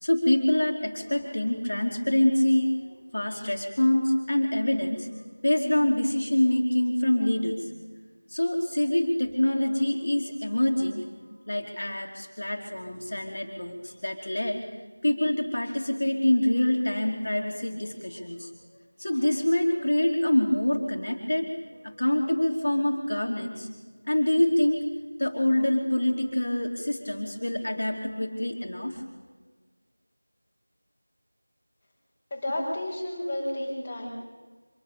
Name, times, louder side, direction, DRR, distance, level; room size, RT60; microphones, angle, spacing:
voice 1, 0.0-2.7 3.1-7.7 8.3-11.1 11.5-14.6 15.0-18.5 19.0-23.7 24.1-24.8 25.2-29.2, left 1 dB, 50° left, 1 dB, 3.2 m, -25 dB
voice 2, 32.3-34.1, left 1 dB, 10° left, -7 dB, 5.2 m, -31 dB
26.0 x 21.0 x 6.9 m, 1.4 s
figure-of-eight pair, 175°, 0 cm